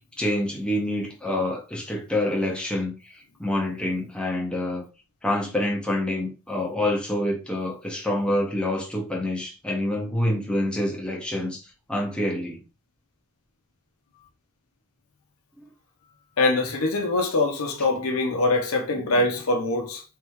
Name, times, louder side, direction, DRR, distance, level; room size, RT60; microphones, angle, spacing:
voice 1, 0.2-4.9 5.2-11.6 11.9-12.6 15.6-15.7 19.1-19.2, left 1 dB, 5° left, 0.9 m, -27 dB
voice 2, 16.4-20.0, left 2 dB, 75° left, 0.9 m, -23 dB
3.7 x 3.5 x 3.1 m
head